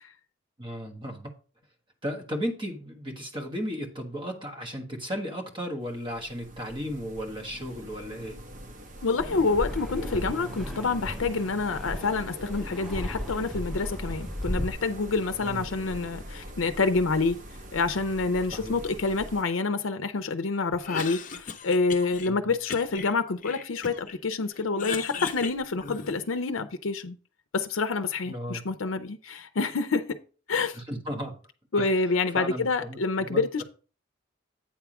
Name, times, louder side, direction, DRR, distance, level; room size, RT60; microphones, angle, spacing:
voice 1, 0.6-1.3 2.0-8.4 15.4-15.7 18.5-18.8 22.3-22.4 28.3-28.6 30.7-31.4 31.8-31.9 32.3-33.5, equal, 25° right, 1.3 m, -35 dB
sound 1, 5.8-19.4, equal, 40° right, 0.9 m, -43 dB
voice 2, 9.0-17.4 17.7-27.2 27.5-30.0 30.5-30.8 31.7-33.6, left 4 dB, 90° left, 0.6 m, -27 dB
Fixed-wing aircraft airplane, 9.2-14.7, equal, ahead, 0.6 m, -35 dB
Cough, 20.7-22.3 22.7-24.2 24.5-26.4, left 5 dB, 40° left, 0.6 m, -37 dB
8.8 x 3.5 x 5.9 m
head